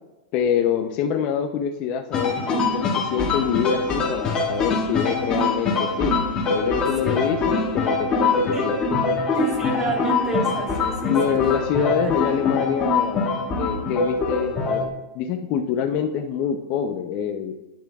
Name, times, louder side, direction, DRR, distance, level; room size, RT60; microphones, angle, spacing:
voice 1, 0.3-6.1 6.5-8.7 9.0-9.1 11.1-17.6, left 8 dB, 40° left, 4 dB, 0.6 m, -25 dB
sound 1, 2.1-14.9, left 3 dB, 25° left, 1.9 m, -24 dB
voice 2, 9.4-11.4 12.0-12.1, right 2 dB, 15° right, 2 dB, 1.4 m, -29 dB
12.0 x 9.1 x 2.4 m, 0.99 s
supercardioid pair, 155°, 4 cm